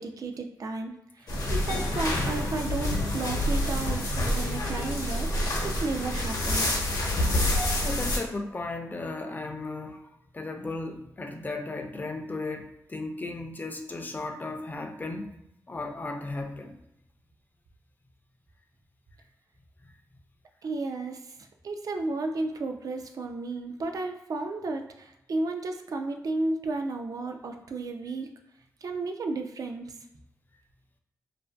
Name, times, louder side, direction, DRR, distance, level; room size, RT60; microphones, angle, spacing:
voice 1, 0.0-7.0 20.6-28.3 28.8-30.0, right 3 dB, 60° right, 5 dB, 0.4 m, -33 dB
sound 1, 1.3-8.2, left 1 dB, 70° left, 0.8 m, -27 dB
voice 2, 6.9-7.5 7.7-15.4 15.7-16.8 19.8-19.9, left 2 dB, 25° left, 4 dB, 0.4 m, -36 dB
2.5 x 2.3 x 2.2 m, 0.82 s
cardioid pair, 55°, 7 cm